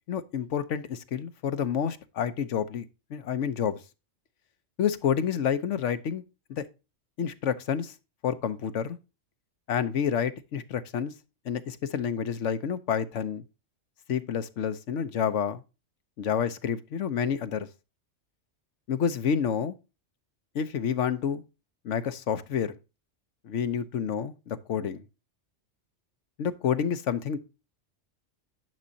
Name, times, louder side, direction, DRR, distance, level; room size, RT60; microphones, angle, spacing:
voice 1, 0.1-3.8 4.8-6.2 6.5-6.6 7.2-7.9 8.2-9.0 9.7-11.1 11.4-13.4 14.1-15.6 16.2-17.7 18.9-19.7 20.5-21.4 21.8-22.7 23.4-25.0 26.4-27.4, left 8 dB, 80° left, 1.1 m, -29 dB
10.5 x 6.2 x 2.7 m
omnidirectional pair, 1.2 m